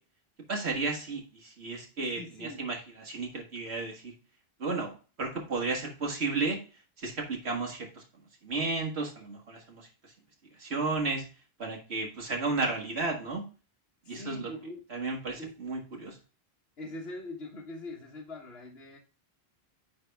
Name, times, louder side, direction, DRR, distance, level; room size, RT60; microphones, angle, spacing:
voice 1, 0.5-4.1 4.6-4.9 5.2-6.6 7.0-8.0 8.4-9.9 10.6-11.2 11.6-13.4 14.1-14.5 14.9-16.2, right 3 dB, 80° right, 1 dB, 1.8 m, -33 dB
voice 2, 2.0-2.6 14.1-14.9 15.4-15.5 16.8-19.0, left 1 dB, 75° left, -2 dB, 1.6 m, -42 dB
9.4 x 3.6 x 3.4 m, 0.35 s
omnidirectional pair, 1.1 m